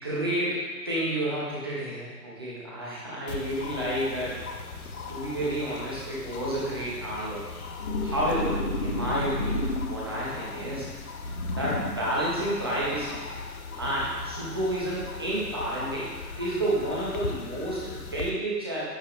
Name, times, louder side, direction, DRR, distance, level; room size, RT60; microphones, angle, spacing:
voice 1, 0.0-4.4 5.1-7.4 8.0-10.8 11.5-13.2 13.8-16.1 16.4-18.8, right 1 dB, 15° right, -8 dB, 1.1 m, -30 dB
sound 1, 3.3-18.3, left 4 dB, 60° left, 0.9 m, -39 dB
sound 2, 7.8-10.3 11.2-12.2, left 2 dB, 35° left, 1.2 m, -31 dB
10.0 x 6.2 x 3.2 m, 1.4 s
hypercardioid pair, 170°, 48 cm